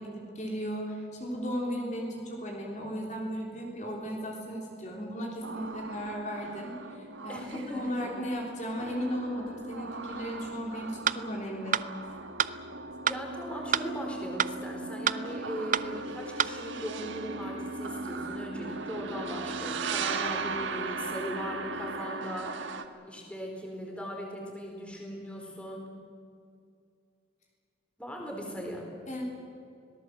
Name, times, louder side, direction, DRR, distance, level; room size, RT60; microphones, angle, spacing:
voice 1, 0.0-11.8 29.1-29.2, equal, 40° left, 0 dB, 3.5 m, -36 dB
sound 1, 5.4-22.9, right 3 dB, 75° right, 1.5 m, -38 dB
voice 2, 7.3-8.1 13.0-22.8 23.0-25.9 28.0-28.9, equal, 5° left, 0 dB, 4.3 m, -39 dB
sound 2, 11.1-11.2 11.7-11.9 12.4-12.5 13.1-13.2 13.7-13.9 14.4-14.5 15.1-15.2 15.7-15.9 16.4-16.5, right 8 dB, 40° right, 0.6 m, -26 dB
26.0 x 19.0 x 7.8 m, 2.4 s
head